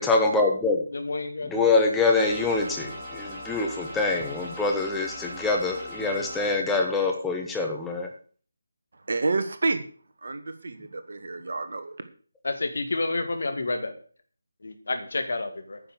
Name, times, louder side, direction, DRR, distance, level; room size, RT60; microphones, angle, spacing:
voice 1, 0.0-0.8 1.5-8.1, left 3 dB, 5° left, 1 dB, 1.3 m, -25 dB
voice 2, 0.9-1.7 12.4-13.9 14.6-15.8, left 2 dB, 55° left, 7 dB, 2.3 m, -29 dB
sound 1, 2.1-6.5, left 1 dB, 15° right, 4.4 m, -39 dB
voice 3, 9.1-9.8 10.2-12.0, right 3 dB, 50° right, 9 dB, 1.5 m, -29 dB
9.6 x 6.5 x 8.2 m, 0.43 s
figure-of-eight pair, 155°, 0 cm